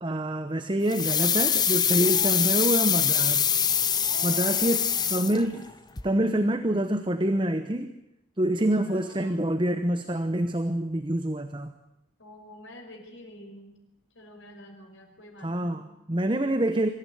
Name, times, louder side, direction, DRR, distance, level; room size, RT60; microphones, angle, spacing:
voice 1, 0.0-3.7 4.2-4.8 5.1-5.7 6.0-7.9 8.4-11.7 15.4-15.8 16.1-16.9, right 1 dB, 25° right, 9 dB, 0.9 m, -26 dB
sound 1, 0.9-5.7 6.0-6.1, left 8 dB, 20° left, 0.8 m, -24 dB
voice 2, 2.0-2.9 4.0-5.1 8.8-9.5 12.2-13.8 14.1-15.9, left 1 dB, 80° left, 2 dB, 5.5 m, -47 dB
24.0 x 15.0 x 9.3 m, 0.87 s
head